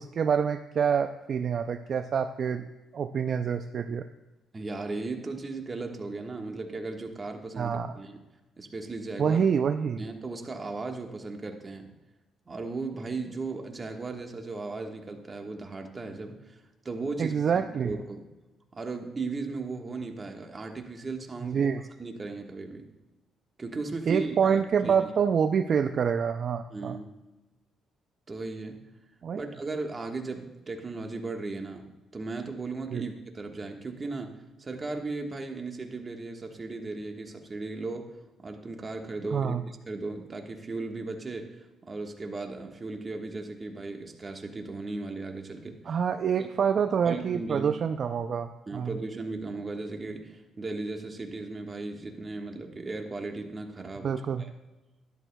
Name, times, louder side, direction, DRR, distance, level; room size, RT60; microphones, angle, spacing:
voice 1, 0.0-2.6 2.9-4.0 7.6-7.9 9.2-10.0 17.2-17.9 21.4-21.8 24.1-27.0 29.2-29.4 32.9-33.0 39.3-39.6 45.9-48.9 54.0-54.4, right 7 dB, 55° right, 7 dB, 0.4 m, -27 dB
voice 2, 4.5-8.2 8.6-9.4 10.0-11.9 12.5-16.6 16.8-18.3 18.7-21.7 22.0-22.9 23.6-25.1 26.7-27.1 28.3-28.8 29.3-31.9 32.1-38.1 38.4-39.5 39.9-46.0 46.4-46.5 47.0-47.7 48.7-54.5, right 3 dB, 30° right, 3 dB, 1.4 m, -36 dB
12.5 x 11.0 x 2.3 m, 1.1 s
cardioid pair, 90°, 0 cm